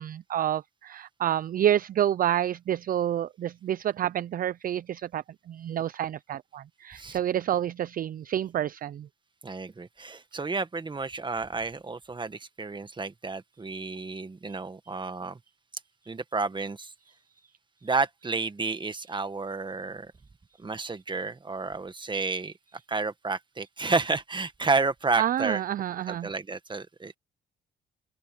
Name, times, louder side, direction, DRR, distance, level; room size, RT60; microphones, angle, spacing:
voice 1, 0.0-9.1 25.2-26.3, right 11 dB, 45° right, 0.4 m, -28 dB
voice 2, 9.4-15.4 16.1-16.9 17.8-20.1 20.6-22.5 22.9-25.6 26.1-27.2, right 3 dB, 25° right, 1.6 m, -31 dB
open air
cardioid pair, 90°, 20 cm